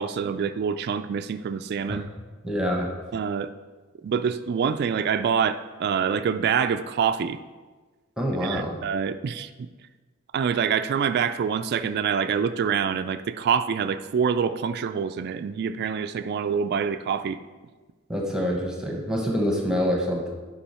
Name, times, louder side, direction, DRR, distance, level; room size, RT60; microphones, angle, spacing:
voice 1, 0.0-2.1 3.1-3.5 4.0-7.4 8.4-9.5 10.3-17.4, right 7 dB, 50° right, 10 dB, 0.3 m, -26 dB
voice 2, 2.4-2.9 8.2-8.7 18.1-20.3, equal, 5° right, 0 dB, 1.0 m, -26 dB
9.8 x 5.4 x 4.3 m, 1.3 s
head